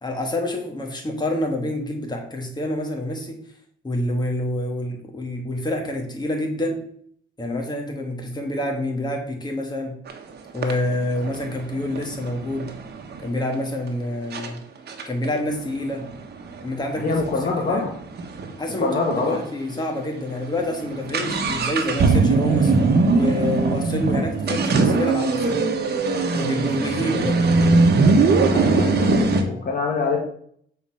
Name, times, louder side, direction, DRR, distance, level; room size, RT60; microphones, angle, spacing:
voice 1, 0.0-3.4 3.8-6.8 7.4-10.0 10.5-12.7 13.2-14.6 15.1-16.1 16.6-17.2 17.7-17.9 18.6-18.9 19.2-22.7 23.1-25.6 26.3-27.4, left 1 dB, 20° left, 1 dB, 2.1 m, -27 dB
sound 1, 10.1-10.2 10.6-13.3 13.9-14.0 14.3-14.5 14.9-18.5 18.8-18.9 19.1-19.2 19.8-20.0 20.3-29.4, right 3 dB, 55° right, 1.2 m, -21 dB
voice 2, 16.9-17.9 18.8-19.4 28.5-30.2, left 4 dB, 45° left, -1 dB, 1.5 m, -24 dB
6.9 x 4.4 x 5.6 m, 0.62 s
cardioid pair, 90°, 20 cm